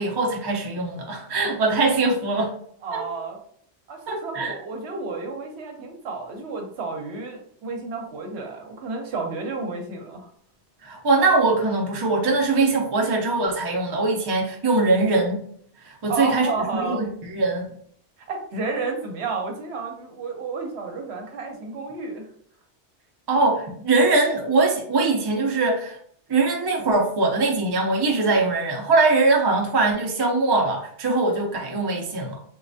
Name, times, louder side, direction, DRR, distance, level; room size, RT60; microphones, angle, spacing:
voice 1, 0.0-2.5 2.9-3.0 4.1-4.6 10.8-15.4 15.8-16.5 16.7-17.6 23.3-26.0 26.3-32.4, right 3 dB, 35° right, 0 dB, 0.4 m, -22 dB
voice 2, 2.8-3.4 3.9-10.3 16.1-17.1 18.3-22.3, right 4 dB, 70° right, 3 dB, 0.9 m, -31 dB
3.1 x 2.3 x 2.6 m, 0.62 s
omnidirectional pair, 1.2 m